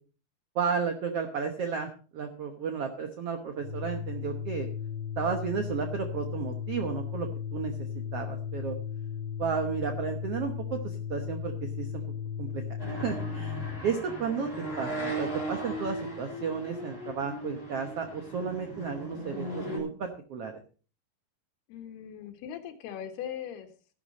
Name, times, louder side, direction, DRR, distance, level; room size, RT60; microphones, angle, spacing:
voice 1, 0.5-4.7 5.2-7.7 8.1-8.8 9.4-12.0 12.4-12.6 13.0-14.5 14.8-20.6, right 6 dB, 80° right, 5 dB, 1.3 m, -33 dB
Organ, 3.6-13.9, left 7 dB, 40° left, 2.0 m, -36 dB
sound 1, 12.8-19.8, right 1 dB, 10° left, 4.5 m, -37 dB
voice 2, 21.7-23.7, left 9 dB, 85° left, 7 dB, 3.5 m, -39 dB
13.5 x 11.5 x 4.1 m, 0.38 s
omnidirectional pair, 4.5 m